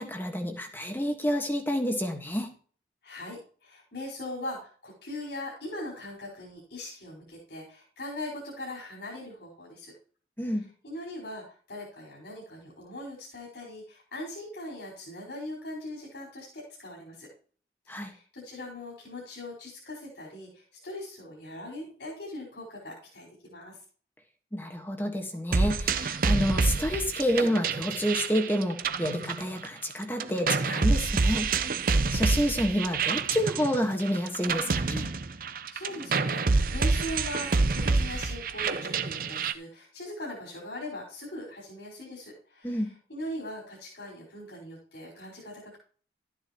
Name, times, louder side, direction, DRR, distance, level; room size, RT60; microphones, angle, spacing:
voice 1, 0.0-2.5 10.4-10.6 17.9-18.1 24.5-31.5 32.1-35.1 42.6-42.9, equal, 10° left, 4 dB, 1.4 m, -29 dB
voice 2, 3.0-9.9 10.5-17.3 17.8-23.8 31.8-32.2 35.3-45.8, left 1 dB, 75° left, -2 dB, 4.8 m, -40 dB
sound 1, 25.5-29.9 30.2-39.5, right 4 dB, 50° right, 0.6 m, -27 dB
13.0 x 9.3 x 3.0 m, 0.43 s
head